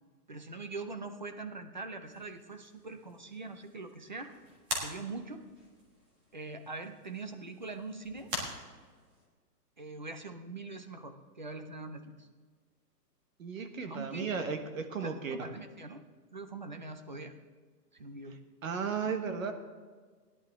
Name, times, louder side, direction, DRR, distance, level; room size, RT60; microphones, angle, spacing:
voice 1, 0.3-4.3 4.7-5.4 6.3-8.3 9.8-12.3 13.9-14.3 14.9-16.0 16.3-17.3 18.0-18.4, right 3 dB, 30° right, 8 dB, 0.5 m, -42 dB
sound 1, 2.0-9.3, equal, 15° right, 1.6 m, -44 dB
voice 2, 13.4-15.4 18.6-19.5, right 5 dB, 55° right, 7 dB, 1.5 m, -35 dB
17.5 x 10.5 x 3.7 m, 1.5 s
hypercardioid pair, 175°, 49 cm